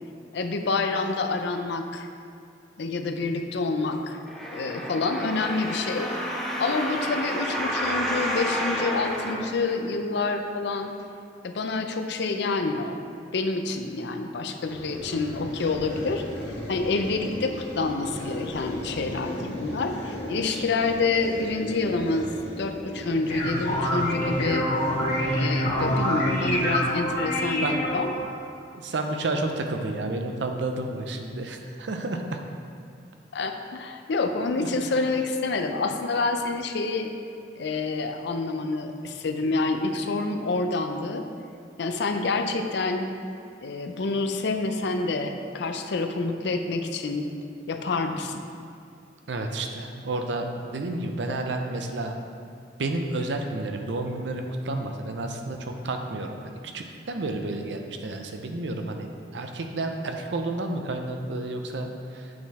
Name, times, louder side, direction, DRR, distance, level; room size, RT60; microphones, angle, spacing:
voice 1, 0.3-2.1 2.8-4.2 4.5-6.1 6.6-10.9 11.4-13.0 13.3-16.2 16.7-22.3 22.6-24.7 25.3-28.1 33.3-37.1 37.6-41.2 41.8-43.1 43.6-47.3 47.7-48.4, left 3 dB, 65° left, 6 dB, 0.5 m, -27 dB
sound 1, 4.3-10.2 10.8-10.9, equal, ahead, 0.7 m, -30 dB
sound 2, 14.6-28.5, left 1 dB, 85° left, 1.7 m, -38 dB
sound 3, 23.0-28.3, equal, 45° left, 1.5 m, -26 dB
voice 2, 28.7-32.4 34.6-35.0 49.3-52.1 52.8-59.1 59.3-62.3, right 2 dB, 70° right, 4 dB, 0.6 m, -31 dB
7.7 x 4.0 x 4.2 m, 2.3 s
head